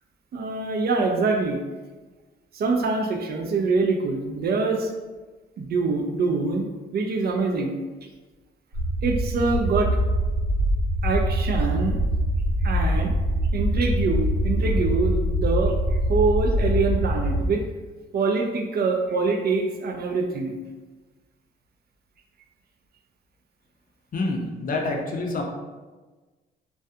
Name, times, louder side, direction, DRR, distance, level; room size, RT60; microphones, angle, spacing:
voice 1, 0.3-1.6 2.5-4.9 5.6-7.7 9.0-10.0 11.0-12.0 12.6-13.1 13.5-15.8 16.1-17.6 18.1-20.6, right 4 dB, 50° right, 2 dB, 0.4 m, -24 dB
sound 1, 8.7-17.5, equal, 80° right, 0.8 m, -23 dB
voice 2, 24.1-25.4, left 2 dB, 45° left, 1 dB, 0.5 m, -27 dB
2.4 x 2.2 x 2.6 m, 1.3 s
cardioid pair, 90°, 20 cm